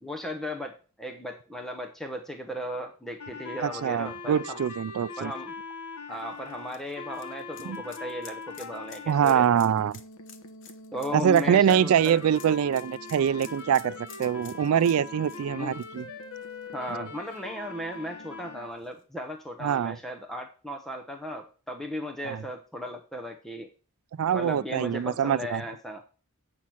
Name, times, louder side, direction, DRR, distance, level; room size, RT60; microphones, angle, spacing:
voice 1, 0.0-4.6 5.2-5.5 6.1-9.6 10.9-12.2 15.5-15.8 16.7-23.7 24.3-26.0, left 1 dB, ahead, 0.8 m, -36 dB
sound 1, 3.2-9.2 9.7-18.7, left 4 dB, 85° left, 1.3 m, -42 dB
voice 2, 3.6-5.3 7.6-7.8 9.1-10.0 11.1-13.9 14.2-16.0 19.6-20.0 22.2-22.4 24.2-25.6, right 8 dB, 75° right, 0.3 m, -24 dB
sound 2, 6.1-16.9 17.3-17.4 18.8-18.9, left 7 dB, 60° left, 1.1 m, -51 dB
8.4 x 5.9 x 6.2 m
head